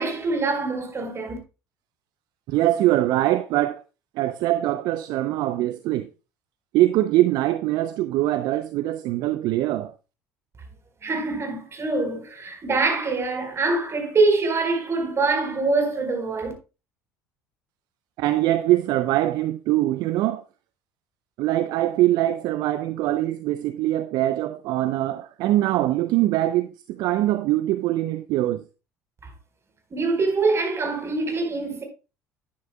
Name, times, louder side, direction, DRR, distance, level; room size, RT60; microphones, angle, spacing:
voice 1, 0.0-1.4 11.0-16.5 29.9-31.8, right 3 dB, 35° right, 4.4 m, -24 dB
voice 2, 2.5-3.8 4.2-6.1 6.7-9.9 18.2-20.4 21.4-28.6, right 15 dB, 60° right, 0.6 m, -23 dB
11.5 x 9.6 x 2.3 m
hypercardioid pair, 65°, 8 cm